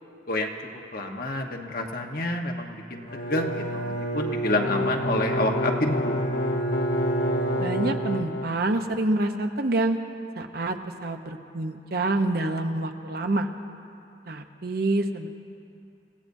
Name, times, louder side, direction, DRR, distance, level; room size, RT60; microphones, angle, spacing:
voice 1, 0.9-6.2, left 1 dB, 55° left, 3 dB, 1.2 m, -28 dB
Bowed string instrument, 3.0-8.5, right 2 dB, 90° left, 2.4 m, -31 dB
sound 1, 4.6-8.5, left 1 dB, 70° left, 0.6 m, -29 dB
voice 2, 7.6-10.0 10.4-13.5 14.3-15.3, right 2 dB, 60° right, 6 dB, 0.9 m, -27 dB
29.0 x 16.0 x 2.7 m, 2.6 s
head